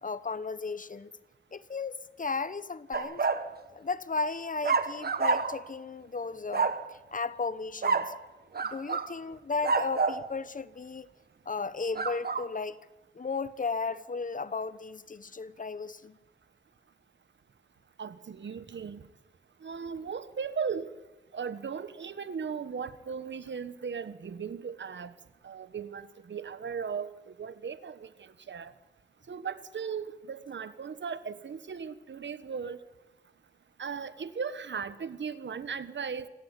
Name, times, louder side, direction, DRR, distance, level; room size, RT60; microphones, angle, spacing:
voice 1, 0.0-1.1 1.5-3.3 3.7-8.1 8.6-11.1 11.5-12.8 13.1-16.2, left 4 dB, 45° left, 1.1 m, -35 dB
sound 1, 2.9-3.5 4.6-5.7 6.5-6.8 7.8-8.2 8.5-9.1 9.6-10.2 11.9-12.5, right 4 dB, 60° right, 1.4 m, -28 dB
voice 2, 18.0-19.1 19.6-20.9 21.3-25.1 25.4-28.7 29.3-32.8 33.8-36.3, right 6 dB, 85° right, 1.3 m, -37 dB
25.5 x 15.0 x 9.5 m
wide cardioid pair, 75°, 18 cm